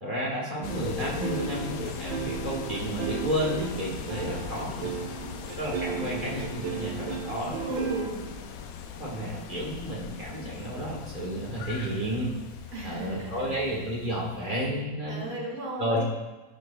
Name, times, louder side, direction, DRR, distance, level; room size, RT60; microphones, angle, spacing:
voice 1, 0.0-4.9 5.6-7.6 8.9-12.3 12.8-15.4 15.8-16.0, equal, 25° right, -4 dB, 1.6 m, -31 dB
sound 1, 0.6-14.7, left 7 dB, 80° left, 0.8 m, -39 dB
sound 2, 0.7-8.1, right 8 dB, 75° right, 1.5 m, -35 dB
voice 2, 5.9-6.2 7.4-8.3 12.7-13.7 15.1-16.0, right 2 dB, 55° right, -4 dB, 2.6 m, -36 dB
11.0 x 6.5 x 2.3 m, 1.2 s
omnidirectional pair, 2.1 m